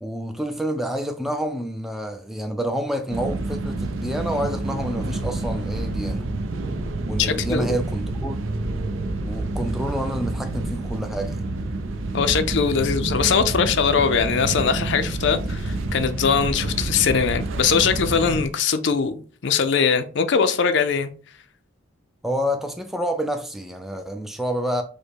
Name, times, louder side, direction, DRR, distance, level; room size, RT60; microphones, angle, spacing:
voice 1, 0.0-6.2 7.1-8.4 9.2-11.4 22.2-24.8, equal, ahead, 0.3 m, -28 dB
sound 1, 3.1-18.5, right 2 dB, 70° right, 0.6 m, -28 dB
voice 2, 7.2-7.8 12.1-21.1, left 6 dB, 55° left, 0.5 m, -21 dB
4.9 x 2.1 x 4.6 m
head